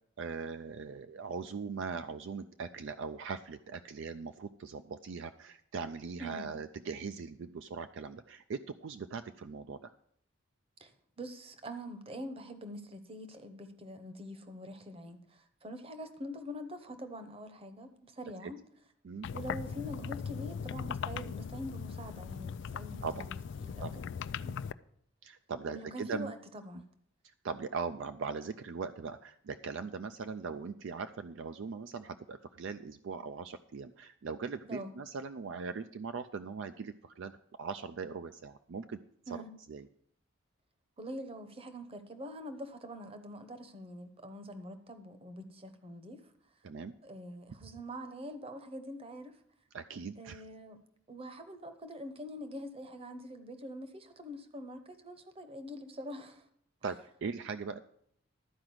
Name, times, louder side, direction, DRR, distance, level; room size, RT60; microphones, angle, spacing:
voice 1, 0.2-9.9 18.4-18.5 19.0-19.3 23.0-23.3 23.8-24.0 24.4-24.6 25.2-26.3 27.2-39.0 39.3-39.4 39.7-39.9 46.6-46.9 49.7-50.4 56.8-57.8, right 5 dB, 60° right, 10 dB, 0.4 m, -40 dB
voice 2, 11.2-18.6 19.3-24.0 25.7-26.8 34.7-34.9 39.3-39.5 41.0-46.3 47.0-49.4 50.2-50.8 51.1-56.5, equal, 25° right, 9 dB, 0.9 m, -44 dB
sound 1, 19.2-24.7, left 6 dB, 60° left, 0.3 m, -39 dB
12.5 x 4.9 x 7.8 m, 0.67 s
head